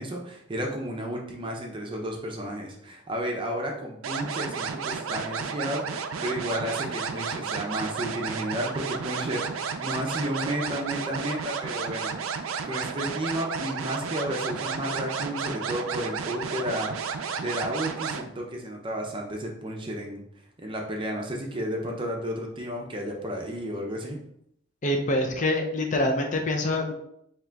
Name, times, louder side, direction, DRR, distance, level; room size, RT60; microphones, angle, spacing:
voice 1, 0.0-20.2 20.6-24.2, equal, 25° right, 1 dB, 0.6 m, -32 dB
sound 1, 4.0-18.2, right 6 dB, 85° right, 0.4 m, -32 dB
voice 2, 24.8-26.9, left 1 dB, 40° left, 3 dB, 0.5 m, -25 dB
3.8 x 2.9 x 3.4 m, 0.73 s
head